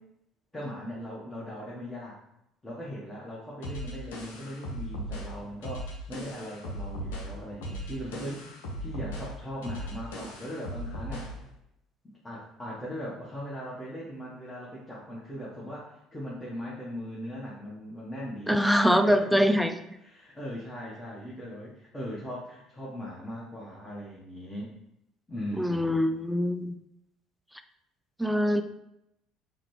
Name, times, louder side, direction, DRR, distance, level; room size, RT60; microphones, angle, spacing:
voice 1, 0.5-2.2 2.6-11.3 12.2-19.5 20.0-24.7 25.3-26.0, equal, 15° left, -6 dB, 1.0 m, -39 dB
sound 1, 3.6-11.4, equal, 75° left, 0.6 m, -38 dB
voice 2, 18.5-19.7 25.6-26.7 28.2-28.6, equal, ahead, 8 dB, 0.3 m, -23 dB
3.7 x 2.2 x 3.1 m, 0.81 s
hypercardioid pair, 60°, 0 cm